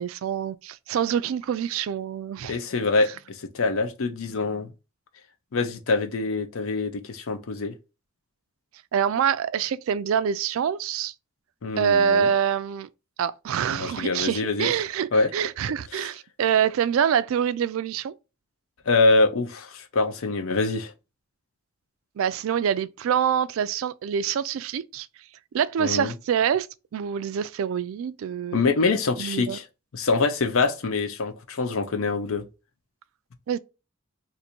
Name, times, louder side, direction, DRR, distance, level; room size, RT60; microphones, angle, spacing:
voice 1, 0.0-2.6 8.9-11.1 11.8-12.9 13.2-18.1 22.2-25.1 25.5-26.7 26.9-28.6 29.2-29.6 33.5-33.6, right 8 dB, 70° right, 0.3 m, -25 dB
voice 2, 2.5-4.7 5.5-7.7 11.6-12.3 13.7-14.7 15.1-15.3 15.9-16.1 18.9-20.9 25.8-26.1 28.5-29.7 29.9-32.4, left 3 dB, 75° left, 0.6 m, -25 dB
2.6 x 2.6 x 4.2 m
head